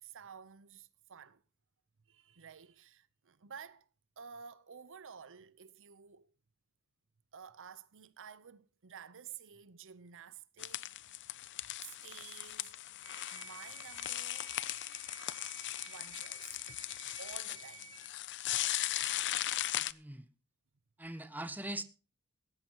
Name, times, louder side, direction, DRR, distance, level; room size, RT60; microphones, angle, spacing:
voice 1, 0.0-1.4 2.1-3.9 4.2-6.3 7.3-11.2 11.8-12.7 13.3-14.5 15.9-16.6 17.2-17.9, right 7 dB, 60° right, 0.8 m, -52 dB
sound 1, 10.6-19.9, left 14 dB, 55° left, 0.6 m, -38 dB
sound 2, 13.0-18.1, right 8 dB, 75° right, 4.3 m, -53 dB
voice 2, 19.7-20.3 21.0-21.8, right 1 dB, 10° right, 1.0 m, -42 dB
16.5 x 15.0 x 3.0 m
head